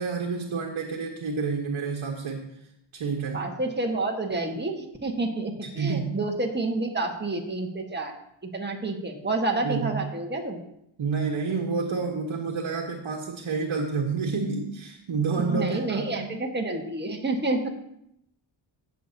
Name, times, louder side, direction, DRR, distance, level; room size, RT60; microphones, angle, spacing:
voice 1, 0.0-2.5 2.9-3.5 5.6-6.2 9.6-10.1 11.0-16.3, right 4 dB, 85° right, -1 dB, 1.3 m, -29 dB
voice 2, 3.3-8.2 8.4-10.6 15.4-17.7, right 2 dB, 20° right, 2 dB, 1.5 m, -29 dB
16.5 x 6.9 x 2.8 m, 0.77 s
cardioid pair, 60°, 47 cm